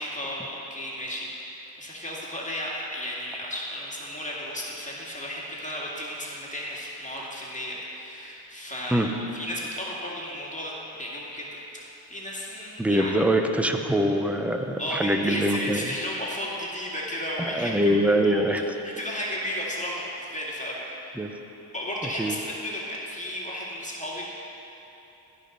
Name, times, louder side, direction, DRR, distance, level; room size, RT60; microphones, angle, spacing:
voice 1, 0.0-13.1 14.8-18.4 18.8-21.2 21.7-24.3, equal, 15° left, -5 dB, 2.1 m, -34 dB
voice 2, 12.8-15.9 17.4-18.6 21.2-21.3 22.2-22.4, right 1 dB, 5° right, 5 dB, 0.7 m, -24 dB
15.5 x 5.6 x 3.9 m, 3.0 s
cardioid pair, 60°, 44 cm